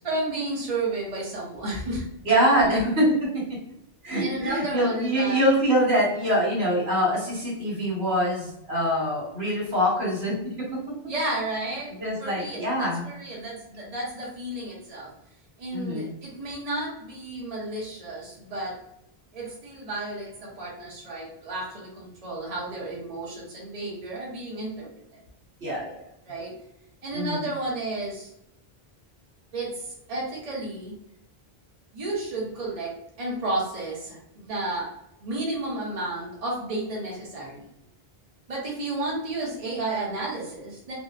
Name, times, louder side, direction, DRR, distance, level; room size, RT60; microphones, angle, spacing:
voice 1, 0.0-2.1 2.5-2.9 4.2-5.4 11.1-15.1 15.6-18.8 19.3-25.2 26.3-26.5 27.0-28.3 29.5-30.9 31.9-34.9 35.2-37.6 38.5-40.9, right 2 dB, 40° right, -5 dB, 0.8 m, -32 dB
voice 2, 2.2-3.3 4.0-10.3 12.0-13.0 15.7-16.1 25.6-25.9 27.1-27.4, equal, 80° right, -5 dB, 1.4 m, -24 dB
2.8 x 2.0 x 2.4 m, 0.80 s
omnidirectional pair, 1.0 m